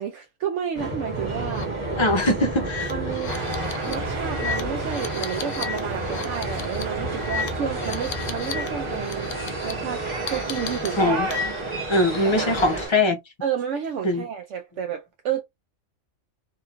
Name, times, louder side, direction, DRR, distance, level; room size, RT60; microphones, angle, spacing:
voice 1, 0.0-1.7 2.9-3.3 3.8-9.3 9.6-10.0 10.3-11.4 12.2-12.8 13.4-15.4, right 8 dB, 75° right, 0.9 m, -31 dB
sound 1, 0.7-12.9, right 2 dB, 25° right, 1.3 m, -31 dB
sound 2, 1.4-1.7 2.0-2.1 2.6-8.7 9.0-9.7 10.3-11.8 12.1-12.9, left 7 dB, 80° left, 0.9 m, -35 dB
voice 2, 2.0-2.9 11.0-11.3 11.9-13.2 14.0-14.3, left 2 dB, 30° left, 0.5 m, -21 dB
sound 3, 3.3-12.9, right 2 dB, 55° right, 1.6 m, -34 dB
2.9 x 2.6 x 2.4 m
omnidirectional pair, 1.3 m